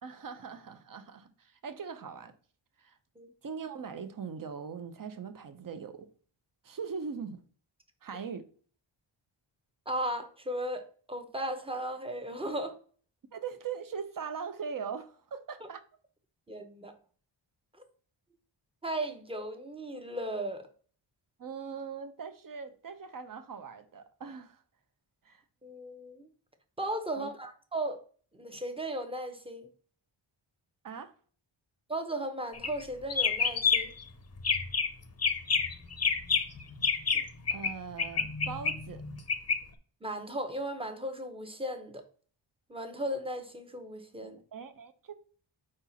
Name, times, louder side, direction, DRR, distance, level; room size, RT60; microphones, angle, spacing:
voice 1, 0.0-2.3 2.8-3.0 3.4-6.1 6.6-7.4 8.0-8.4 13.3-15.8 21.4-24.6 25.2-25.4 27.2-27.3 30.8-31.1 37.5-39.0 44.2-45.1, right 6 dB, 40° right, 0.7 m, -41 dB
voice 2, 9.9-12.8 15.6-15.7 16.5-16.9 18.8-20.7 25.6-26.3 26.8-28.0 28.3-29.7 31.9-33.9 37.1-37.2 40.0-42.0 42.7-44.4, right 1 dB, 10° right, 0.8 m, -36 dB
sound 1, 32.5-32.8 33.1-34.0 34.4-34.9 35.2-37.7 38.0-39.6, left 5 dB, 30° left, 0.6 m, -28 dB
5.0 x 4.4 x 5.6 m
wide cardioid pair, 165°, 49 cm